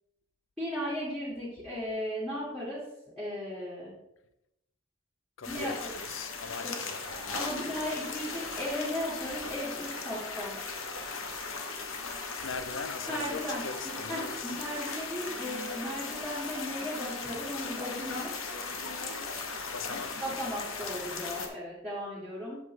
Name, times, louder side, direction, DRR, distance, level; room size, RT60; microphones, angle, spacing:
voice 1, 0.6-2.8 3.2-3.9 5.5-5.9 6.6-6.7 7.1-10.6 13.1-18.3 20.2-22.6, equal, ahead, 2.1 m, -36 dB
sound 1, 5.4-21.5, left 4 dB, 85° left, 1.2 m, -38 dB
voice 2, 5.4-7.4 12.4-14.6 19.7-20.2, left 5 dB, 65° left, 0.6 m, -41 dB
8.0 x 7.1 x 3.3 m
head